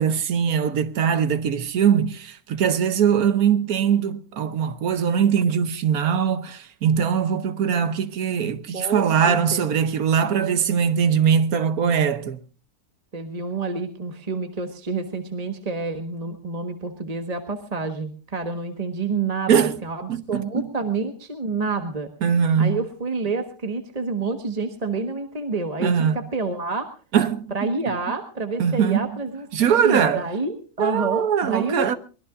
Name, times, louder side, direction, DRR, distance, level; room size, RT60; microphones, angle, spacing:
voice 1, 0.0-12.4 19.5-19.8 20.1-20.7 22.2-22.8 25.8-26.1 27.1-27.5 28.6-29.1 29.5-30.2 30.8-32.0, right 7 dB, 70° right, 1.4 m, -21 dB
voice 2, 8.7-9.7 13.1-22.1 22.6-26.9 27.5-32.0, right 3 dB, 25° right, 1.4 m, -28 dB
23.5 x 20.5 x 2.5 m
omnidirectional pair, 1.6 m